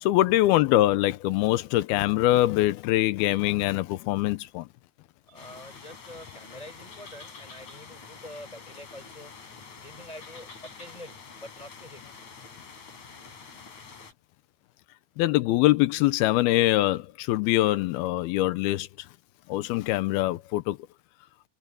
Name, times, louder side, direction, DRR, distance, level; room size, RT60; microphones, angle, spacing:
voice 1, 0.0-4.6 15.2-18.9 19.5-20.8, left 16 dB, 90° left, 2.7 m, -23 dB
voice 2, 5.3-9.3 9.8-12.1, equal, 10° left, 4.8 m, -46 dB
sound 1, 5.4-14.1, left 5 dB, 50° left, 5.0 m, -46 dB
omnidirectional pair, 4.5 m